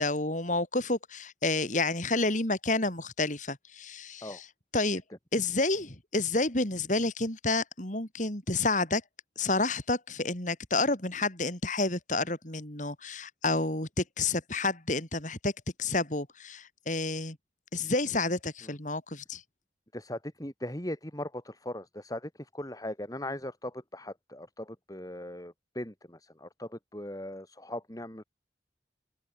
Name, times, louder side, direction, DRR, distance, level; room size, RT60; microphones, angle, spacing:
voice 1, 0.0-4.4 4.7-5.0 5.3-9.0 9.4-15.5 15.8-17.4 17.7-19.4, left 3 dB, 45° left, 4.9 m, -29 dB
voice 2, 19.9-28.2, left 1 dB, 20° left, 3.8 m, -39 dB
open air
head